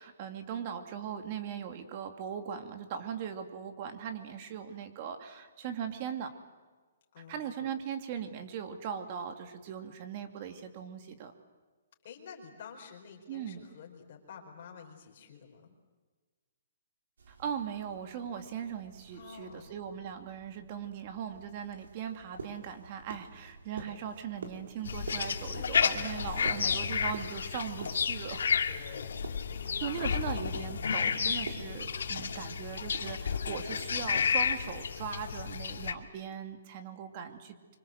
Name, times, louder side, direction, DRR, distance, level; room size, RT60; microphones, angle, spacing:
voice 1, 0.0-6.3 7.3-11.3 13.3-13.6 17.3-28.5 29.8-37.8, right 8 dB, 35° right, 7 dB, 2.6 m, -39 dB
voice 2, 7.1-7.7 12.0-15.7 19.1-19.8 25.5-26.1 26.5-26.6 28.0-28.4 28.7-30.3, left 6 dB, 45° left, 0 dB, 4.6 m, -49 dB
sound 1, 17.2-34.3, right 4 dB, 90° right, 5.0 m, -49 dB
sound 2, 24.9-35.9, left 6 dB, 75° left, 2.3 m, -32 dB
25.5 x 25.5 x 7.9 m, 1.4 s
hypercardioid pair, 165°, 0 cm